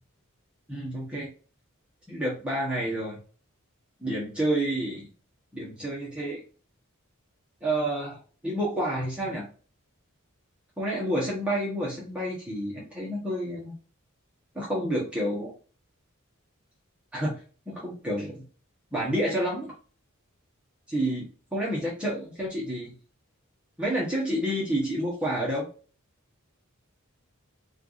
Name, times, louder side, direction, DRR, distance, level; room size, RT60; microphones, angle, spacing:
voice 1, 0.7-1.3 2.1-3.2 4.0-5.1 5.5-6.4 7.6-9.5 10.8-13.7 14.5-15.5 17.1-17.3 17.7-18.4 18.9-19.7 20.9-21.2 21.5-22.9 23.8-25.7, right 1 dB, 5° right, -6 dB, 0.9 m, -29 dB
4.4 x 2.4 x 2.5 m, 0.39 s
head